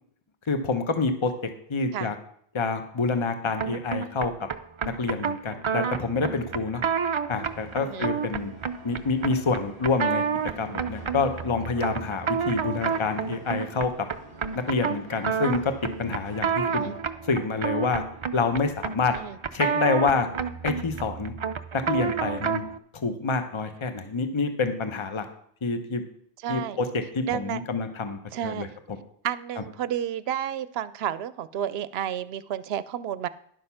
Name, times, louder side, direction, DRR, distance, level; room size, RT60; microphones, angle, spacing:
voice 1, 0.5-1.3 1.7-2.1 2.5-4.3 5.0-6.8 7.3-8.5 8.8-10.2 10.6-14.1 14.7-15.7 16.0-16.9 17.3-18.0 18.3-19.2 19.5-20.3 20.6-21.3 21.7-22.6 22.9-25.3 25.6-26.0 26.5-28.7, left 4 dB, 30° left, 7 dB, 0.9 m, -27 dB
sound 1, 3.6-22.8, right 6 dB, 50° right, 0.3 m, -30 dB
sound 2, 7.3-17.0, equal, 75° left, 4.6 m, -48 dB
voice 2, 7.8-8.1 16.7-16.9 19.1-19.4 26.4-26.8 27.3-27.6 28.3-28.7 29.2-33.3, right 10 dB, 75° right, 15 dB, 0.8 m, -31 dB
11.0 x 6.5 x 5.7 m, 0.65 s
omnidirectional pair, 1.1 m